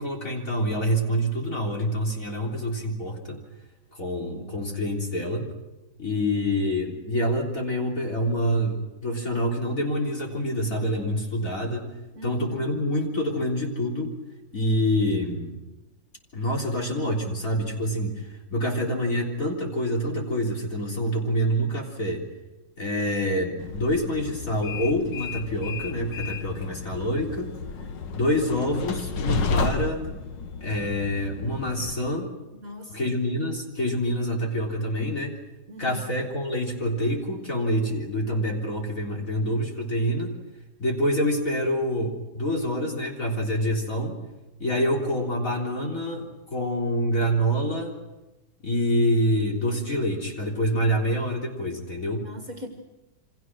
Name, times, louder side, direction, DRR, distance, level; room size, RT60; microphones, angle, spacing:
voice 1, 0.0-3.4 3.9-5.5 6.0-11.9 12.2-14.1 14.5-15.6 16.3-22.2 22.8-27.5 28.1-30.0 30.6-32.3 32.9-35.4 35.8-40.3 40.8-44.2 44.6-48.0 48.6-52.2, equal, 45° left, 1 dB, 4.1 m, -26 dB
voice 2, 4.2-4.6 12.1-12.7 32.5-33.2 35.7-36.1 52.2-52.7, equal, 50° right, 4 dB, 2.4 m, -41 dB
Train, 23.6-31.9, left 5 dB, 75° left, 1.9 m, -32 dB
28.5 x 25.5 x 6.2 m, 1.0 s
omnidirectional pair, 2.0 m